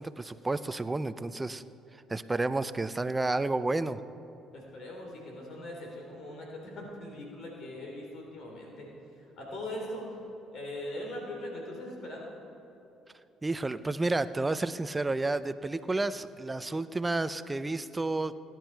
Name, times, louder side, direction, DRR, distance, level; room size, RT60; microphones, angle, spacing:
voice 1, 0.0-1.6 2.1-4.0 13.4-18.3, right 2 dB, 20° right, 14 dB, 0.5 m, -31 dB
voice 2, 4.5-8.9 9.4-10.2 10.5-12.3, left 1 dB, 60° left, -1 dB, 3.4 m, -40 dB
17.5 x 10.5 x 4.6 m, 3.0 s
supercardioid pair, 75°, 0 cm